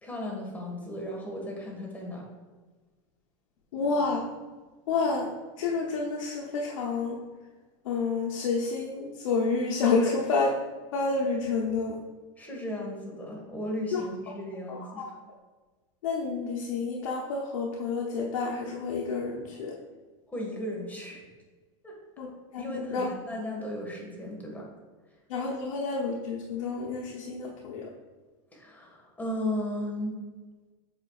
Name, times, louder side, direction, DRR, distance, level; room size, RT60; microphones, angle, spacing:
voice 1, 0.0-2.2 9.9-10.2 12.4-15.1 20.3-21.2 21.8-22.0 22.6-24.7 28.5-30.2, left 1 dB, 10° left, -1 dB, 1.7 m, -35 dB
voice 2, 3.7-4.2 4.9-5.3 5.6-7.2 7.9-10.5 10.9-11.9 14.7-15.1 16.0-19.7 22.2-22.3 22.5-23.0 25.3-27.9, left 4 dB, 85° left, -2 dB, 0.9 m, -29 dB
7.8 x 5.0 x 2.4 m, 1.3 s
supercardioid pair, 125°, 17 cm